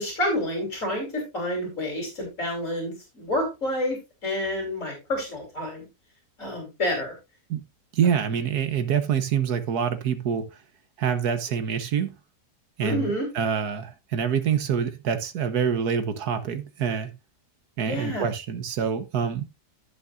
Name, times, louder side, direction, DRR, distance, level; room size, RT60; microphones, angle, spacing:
voice 1, 0.0-5.9 6.4-7.1 12.8-13.3 17.8-18.2, left 1 dB, 50° left, 3.9 m, -29 dB
voice 2, 7.9-10.5 11.0-12.1 12.8-17.1 17.8-19.4, right 7 dB, 70° right, 1.6 m, -26 dB
15.5 x 6.4 x 2.5 m
omnidirectional pair, 1.8 m